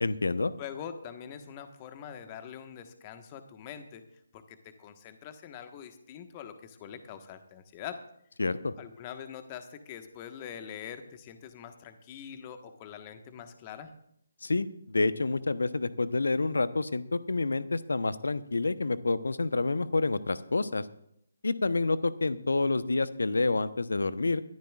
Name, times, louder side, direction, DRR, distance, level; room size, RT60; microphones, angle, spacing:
voice 1, 0.0-0.5 8.4-8.7 14.4-20.9 21.4-24.4, left 3 dB, 70° left, 14 dB, 0.9 m, -28 dB
voice 2, 0.6-4.0 4.3-8.0 8.8-13.9, left 8 dB, 25° left, 8 dB, 1.4 m, -44 dB
22.5 x 13.5 x 2.5 m, 0.73 s
figure-of-eight pair, 145°, 0 cm